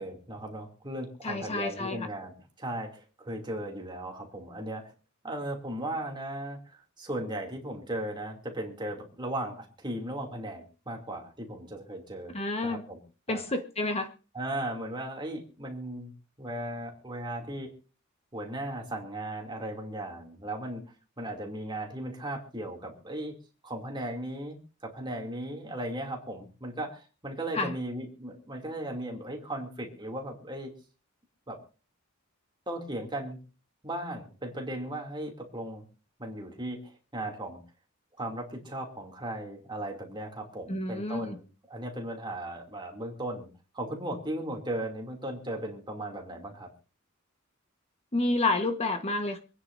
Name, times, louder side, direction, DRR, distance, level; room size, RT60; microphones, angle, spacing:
voice 1, 0.0-4.9 5.2-12.3 12.6-13.0 13.3-13.4 14.3-16.1 16.4-17.7 18.3-20.8 21.2-23.4 23.6-30.7 31.5-31.6 32.7-33.4 33.8-35.8 36.2-36.8 37.1-37.6 38.2-43.5 43.7-46.7, right 1 dB, 20° right, 1 dB, 2.6 m, -37 dB
voice 2, 1.2-2.1 12.3-12.8 13.3-14.1 27.5-27.7 40.7-41.4 48.1-49.4, left 2 dB, 30° left, 6 dB, 1.2 m, -29 dB
26.0 x 9.8 x 2.6 m, 0.35 s
head